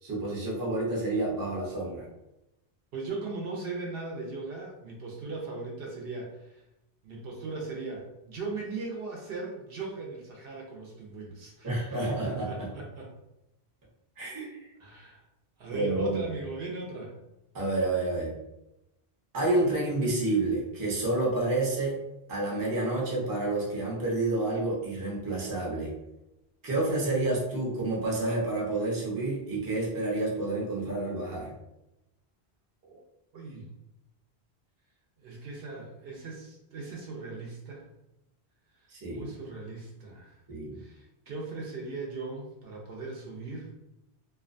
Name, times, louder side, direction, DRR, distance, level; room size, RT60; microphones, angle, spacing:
voice 1, 0.0-2.1 11.6-12.7 14.2-14.6 15.7-16.2 17.5-18.3 19.3-22.0 22.3-25.9 26.6-31.5 38.9-39.3 40.5-40.8, right 2 dB, 25° right, -4 dB, 0.6 m, -29 dB
voice 2, 2.9-6.6 7.0-13.1 14.8-15.2 15.6-17.1 32.8-33.0 33.3-33.7 35.2-37.9 39.1-40.4 40.8-43.7, right 3 dB, 70° right, -1 dB, 0.8 m, -38 dB
2.5 x 2.2 x 2.5 m, 0.91 s
omnidirectional pair, 1.1 m